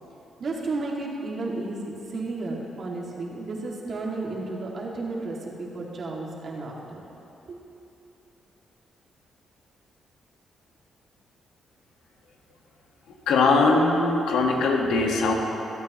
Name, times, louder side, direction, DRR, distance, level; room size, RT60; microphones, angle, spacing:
voice 1, 0.4-7.0 7.5-7.6, right 2 dB, 55° right, -2 dB, 2.4 m, -33 dB
voice 2, 13.3-15.3, left 3 dB, 85° left, 0 dB, 1.6 m, -21 dB
25.5 x 8.6 x 3.1 m, 2.9 s
cardioid pair, 70°, 0 cm